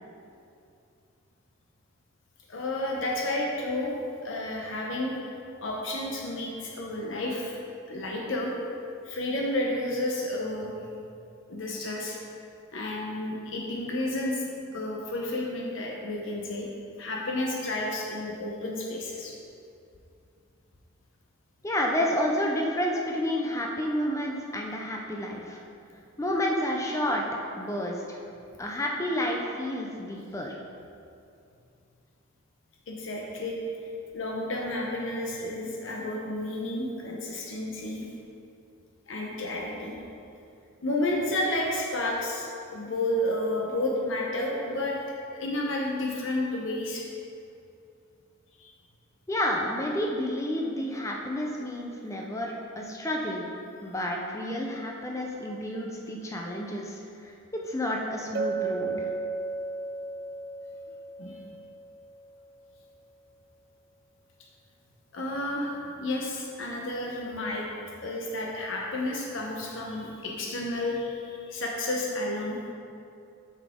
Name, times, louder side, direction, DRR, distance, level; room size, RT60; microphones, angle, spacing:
voice 1, 2.5-5.3 5.6-7.6 7.9-8.5 9.0-10.9 11.5-12.2 12.7-14.4 14.7-16.7 17.0-19.3 32.9-33.6 34.1-38.1 39.1-40.0 40.8-45.0 45.3-47.0 48.6-48.7 53.8-53.9 61.2-61.4 65.1-67.7 68.0-72.6, left 1 dB, 65° left, -2 dB, 0.8 m, -31 dB
voice 2, 21.6-25.6 26.2-27.2 27.6-28.2 28.6-30.6 49.3-53.5 53.8-59.1, left 1 dB, 15° left, 0 dB, 0.5 m, -30 dB
Chink clink, 58.3-62.4, right 3 dB, 45° right, 0.3 m, -34 dB
7.1 x 5.9 x 3.6 m, 2.6 s
head